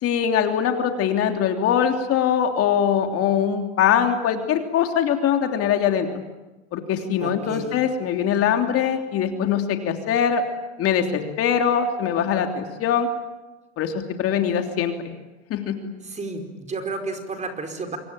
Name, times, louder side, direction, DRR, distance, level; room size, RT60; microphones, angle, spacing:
voice 1, 0.0-6.1 6.7-10.4 10.8-13.1 13.8-13.9 14.2-14.9 15.5-15.9, left 8 dB, 40° left, 5 dB, 3.2 m, -22 dB
voice 2, 7.2-7.8 16.0-18.0, right 3 dB, 20° right, 5 dB, 4.7 m, -32 dB
27.0 x 24.5 x 9.1 m, 1.1 s
supercardioid pair, 115°, 34 cm